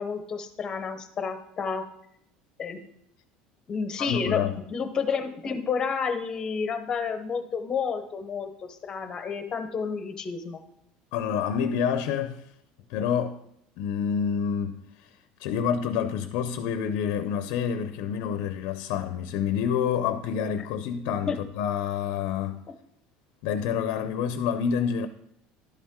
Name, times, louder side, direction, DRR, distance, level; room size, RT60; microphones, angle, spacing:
voice 1, 0.0-1.9 2.6-2.8 3.7-10.6 21.3-21.4, left 5 dB, 25° left, 0.8 m, -30 dB
voice 2, 4.0-4.6 11.1-12.4 12.9-13.4 13.8-14.8 15.4-22.6 23.4-25.1, left 7 dB, 65° left, 0.6 m, -28 dB
11.5 x 7.2 x 3.6 m
cardioid pair, 160°, 3 cm